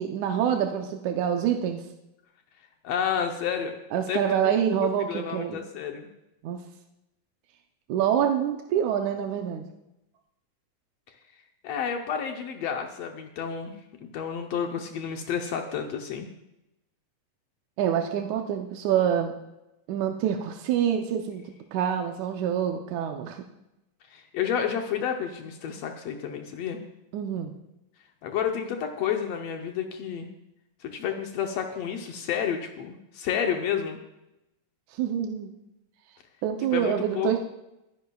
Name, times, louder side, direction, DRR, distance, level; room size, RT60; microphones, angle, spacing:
voice 1, 0.0-1.8 3.9-5.6 6.4-6.6 7.9-9.7 17.8-19.3 19.9-21.4 21.7-23.4 27.1-27.6 34.9-35.5 36.4-37.4, right 9 dB, 75° right, 4 dB, 1.8 m, -26 dB
voice 2, 2.8-3.7 4.1-6.1 11.6-16.3 24.1-26.8 28.2-30.3 30.8-34.0 36.7-37.3, left 8 dB, 85° left, 3 dB, 1.4 m, -30 dB
22.0 x 10.5 x 2.3 m, 0.90 s
omnidirectional pair, 4.0 m